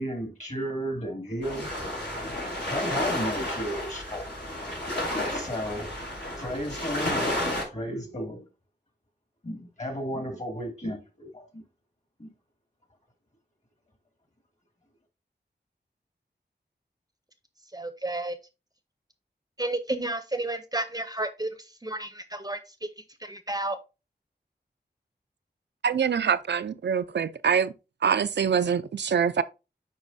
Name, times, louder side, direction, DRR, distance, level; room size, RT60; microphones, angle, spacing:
voice 1, 0.0-1.7 2.7-4.3 5.3-5.9 6.4-7.3 7.7-8.4 9.4-11.6 12.2-12.3, equal, 40° left, 2.2 m, -33 dB
sound 1, 1.4-7.6, left 1 dB, 80° left, 3.8 m, -31 dB
voice 2, 17.7-18.4 19.6-21.5 21.8-22.6 23.2-23.8, right 2 dB, 20° right, 0.7 m, -31 dB
voice 3, 25.8-27.7 28.0-29.4, right 7 dB, 80° right, 0.4 m, -24 dB
9.8 x 4.0 x 2.6 m
wide cardioid pair, 65°, 18 cm